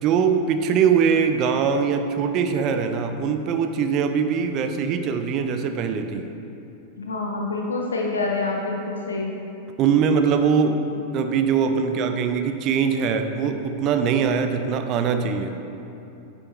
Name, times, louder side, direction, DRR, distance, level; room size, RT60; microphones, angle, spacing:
voice 1, 0.0-6.3 9.8-10.8 11.1-15.6, right 6 dB, 35° right, 7 dB, 0.6 m, -22 dB
voice 2, 7.0-9.3, left 3 dB, 70° left, 0 dB, 0.8 m, -26 dB
9.6 x 7.7 x 3.1 m, 2.9 s
figure-of-eight pair, 90°, 0 cm